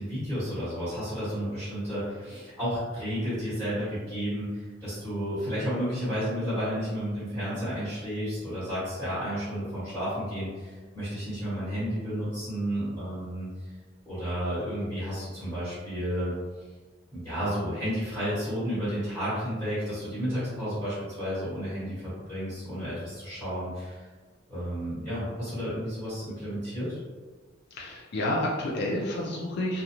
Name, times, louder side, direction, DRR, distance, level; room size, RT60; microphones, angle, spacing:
voice 1, 0.0-13.5 14.1-16.3 17.1-24.0 24.5-27.0, equal, 10° left, -14 dB, 1.2 m, -32 dB
voice 2, 27.7-29.8, left 1 dB, 55° left, -3 dB, 0.4 m, -29 dB
2.4 x 2.2 x 2.8 m, 1.4 s
head